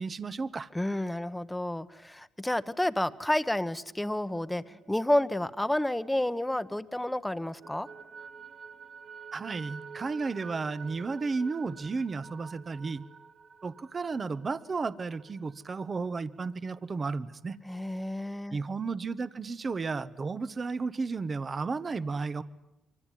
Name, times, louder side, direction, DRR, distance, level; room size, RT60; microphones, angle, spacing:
voice 1, 0.0-0.7 9.3-13.0 13.6-17.6 18.5-22.4, right 4 dB, 35° right, 14 dB, 1.2 m, -33 dB
voice 2, 0.7-7.9 17.7-18.6, left 1 dB, 5° left, 13 dB, 1.2 m, -30 dB
sound 1, 3.9-6.7 7.1-16.5, right 6 dB, 55° right, 2.8 m, -49 dB
26.5 x 24.5 x 9.4 m, 0.88 s
cardioid pair, 90°, 0 cm